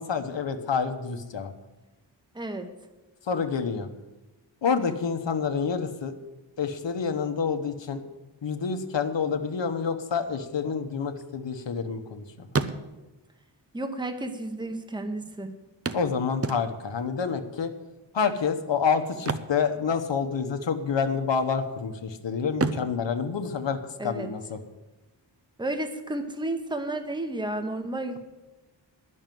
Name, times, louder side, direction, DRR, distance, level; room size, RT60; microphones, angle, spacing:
voice 1, 0.0-1.5 3.3-3.9 4.6-6.1 6.6-8.0 8.4-12.5 15.9-17.7 18.1-24.6, left 6 dB, 75° left, 7 dB, 1.1 m, -28 dB
voice 2, 2.3-2.7 13.7-15.5 24.0-24.3 25.6-28.2, right 1 dB, 10° right, 7 dB, 1.1 m, -32 dB
sound 1, 10.9-12.1 12.4-13.3 14.2-14.3 14.5-14.6 15.9-17.0 19.1-20.4 20.7-20.9 21.4-22.0 22.5-24.3 26.3-26.4 26.8-26.9, right 4 dB, 35° right, 0.6 m, -33 dB
10.5 x 6.5 x 9.1 m, 1.1 s
wide cardioid pair, 85°, 44 cm